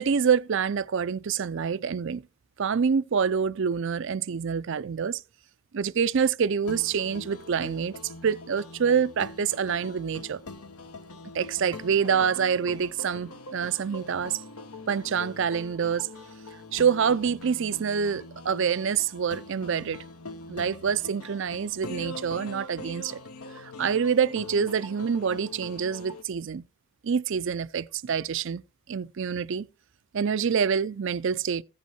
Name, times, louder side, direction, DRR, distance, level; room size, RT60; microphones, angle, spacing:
voice 1, 0.0-2.2 2.6-5.2 5.7-10.4 11.3-14.4 14.9-16.2 16.7-20.0 20.5-23.2 23.6-26.7 27.0-28.6 28.9-29.7 30.1-31.6, right 6 dB, 55° right, 0.4 m, -26 dB
sound 1, 6.6-26.2, left 2 dB, 80° left, 1.1 m, -43 dB
15.5 x 5.6 x 4.4 m
head